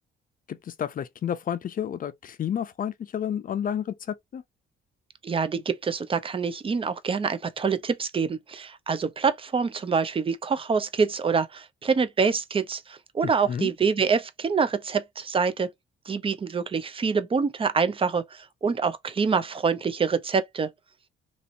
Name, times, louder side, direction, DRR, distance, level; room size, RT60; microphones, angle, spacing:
voice 1, 0.5-4.4 13.2-13.7, left 9 dB, 45° left, 0.5 m, -31 dB
voice 2, 5.2-15.7 16.1-20.7, right 5 dB, 25° right, 0.5 m, -26 dB
3.0 x 2.8 x 2.5 m
cardioid pair, 90°, 20 cm